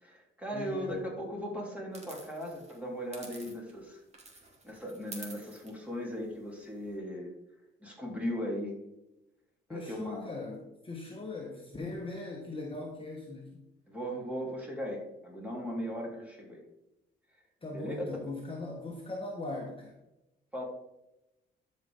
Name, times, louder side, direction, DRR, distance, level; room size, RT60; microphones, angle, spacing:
voice 1, 0.0-4.0 4.6-7.3 7.8-8.8 9.7-10.3 13.9-16.6 17.7-17.9 20.5-20.6, equal, 5° right, -2 dB, 3.5 m, -38 dB
voice 2, 0.5-1.1 9.7-13.6 17.6-19.9, left 2 dB, 25° left, -1 dB, 1.5 m, -40 dB
sound 1, 1.9-3.9 4.1-7.0, right 2 dB, 35° right, 2.5 m, -50 dB
12.5 x 5.4 x 3.8 m, 0.92 s
cardioid pair, 90°, 20 cm